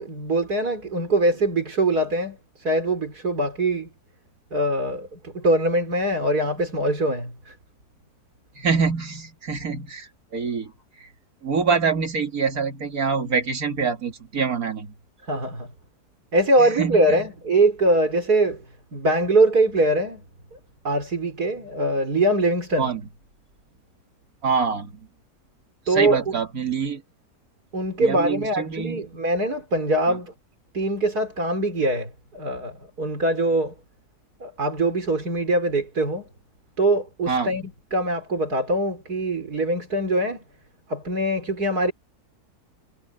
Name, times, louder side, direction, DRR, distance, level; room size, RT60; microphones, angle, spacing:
voice 1, 0.0-3.9 4.5-7.6 15.3-15.7 16.3-18.6 18.9-20.2 20.5-20.6 20.8-22.9 25.9-26.3 27.7-30.3 30.7-33.7 34.4-36.3 36.8-37.6 37.9-40.4 40.9-41.9, right 1 dB, 85° right, 5.0 m, -23 dB
voice 2, 8.5-10.7 11.0-11.1 11.4-14.9 16.6-17.3 22.8-23.0 24.4-25.1 25.9-27.0 28.0-29.1 30.1-30.2 37.3-37.5, right 5 dB, 70° right, 2.5 m, -25 dB
omnidirectional pair, 1.6 m